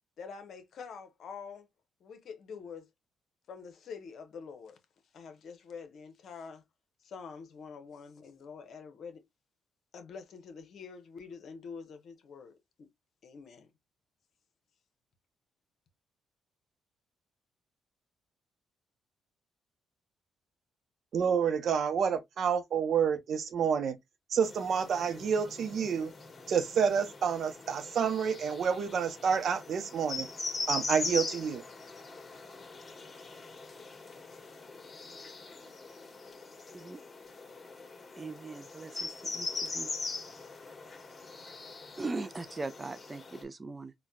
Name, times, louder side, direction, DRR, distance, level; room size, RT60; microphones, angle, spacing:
voice 1, 0.2-1.7 2.0-2.9 3.5-4.8 5.1-6.6 7.0-9.2 9.9-12.9 13.2-13.7, left 5 dB, 60° left, 0.9 m, -46 dB
voice 2, 21.1-24.0 24.3-26.1 26.5-30.3 30.7-31.6, right 7 dB, 60° right, 0.6 m, -29 dB
sound 1, 24.4-43.4, left 3 dB, 30° left, 1.4 m, -41 dB
voice 3, 38.2-39.9 42.0-43.9, right 3 dB, 25° right, 0.3 m, -40 dB
4.1 x 2.2 x 2.3 m
cardioid pair, 90°, 0 cm